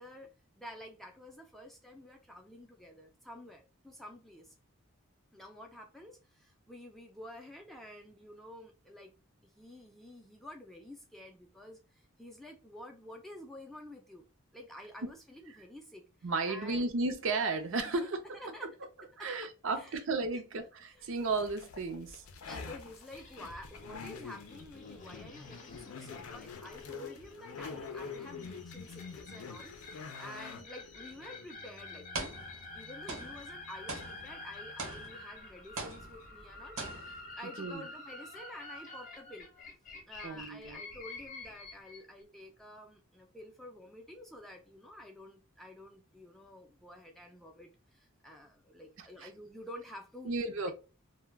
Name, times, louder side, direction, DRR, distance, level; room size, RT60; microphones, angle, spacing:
voice 1, 0.0-4.5 5.3-9.1 9.6-14.2 14.5-16.1 16.5-16.8 17.9-18.1 18.3-18.7 19.2-19.3 19.7-19.9 20.3-20.4 20.9-21.1 22.5-32.3 32.7-39.5 40.1-50.3 50.6-50.7, left 1 dB, ahead, 0.4 m, -50 dB
voice 2, 16.2-18.4 19.0-22.2 37.4-37.9 40.2-40.8 49.2-49.3 50.2-50.7, right 3 dB, 65° right, 0.6 m, -34 dB
sound 1, 21.2-35.1, left 5 dB, 85° left, 0.5 m, -47 dB
sound 2, 23.1-42.0, left 3 dB, 40° left, 0.6 m, -49 dB
sound 3, 31.1-31.3 32.1-32.8 33.1-35.4 35.8-36.5 36.8-37.3, right 3 dB, 85° right, 1.0 m, -42 dB
2.2 x 2.1 x 3.3 m
head